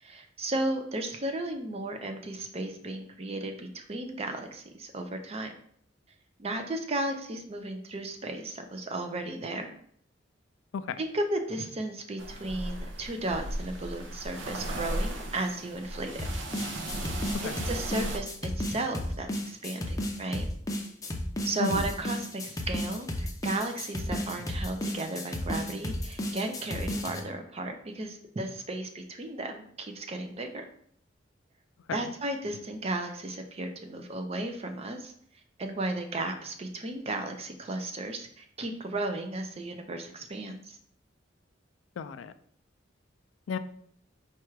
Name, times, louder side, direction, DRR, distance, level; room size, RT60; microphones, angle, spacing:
voice 1, 0.0-5.5 6.4-9.7 11.0-16.3 17.4-20.4 21.4-30.7 31.9-35.1 35.6-40.8, right 2 dB, 35° right, 5 dB, 0.5 m, -34 dB
sound 1, 12.2-18.2, right 1 dB, 70° right, 0.6 m, -36 dB
sound 2, 16.2-27.2, left 1 dB, 20° left, 0.5 m, -33 dB
voice 2, 42.0-42.3 43.5-43.6, left 6 dB, 85° left, 11 dB, 0.3 m, -33 dB
4.4 x 2.4 x 4.6 m, 0.62 s
head